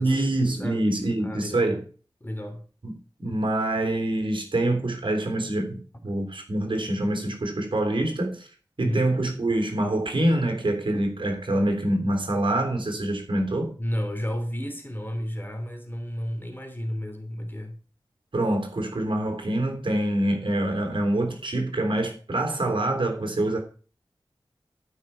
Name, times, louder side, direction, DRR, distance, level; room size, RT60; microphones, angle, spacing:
voice 1, 0.0-1.8 2.8-2.9 3.2-8.5 8.8-13.7 18.3-23.6, right 1 dB, 65° right, 3.5 m, -25 dB
voice 2, 1.2-1.7 2.2-2.6 8.8-9.0 13.8-17.8, equal, 20° left, 3.1 m, -32 dB
12.5 x 6.0 x 5.6 m
wide cardioid pair, 65°, 9 cm